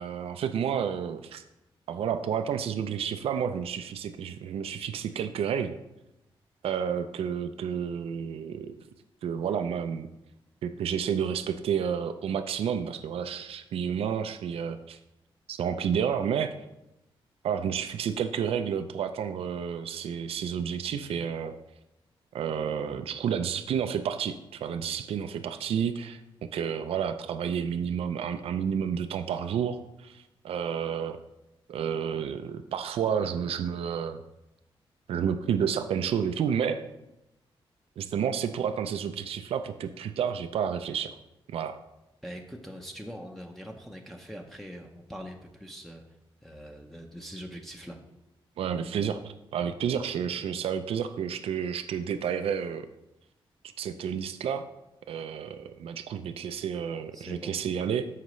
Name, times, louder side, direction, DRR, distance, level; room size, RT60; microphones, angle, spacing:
voice 1, 0.0-1.4 1.9-5.7 6.6-8.7 9.2-10.1 10.6-15.0 15.5-16.5 17.4-21.5 22.3-26.2 26.5-31.2 31.7-34.2 35.1-36.8 38.0-41.2 41.5-41.8 48.6-52.9 53.8-54.6 55.1-58.1, right 8 dB, 85° right, 9 dB, 0.5 m, -30 dB
voice 2, 42.2-46.0 46.4-48.0 57.1-57.6, equal, ahead, 0 dB, 0.8 m, -42 dB
13.0 x 4.9 x 3.1 m, 0.91 s
cardioid pair, 100°, 10 cm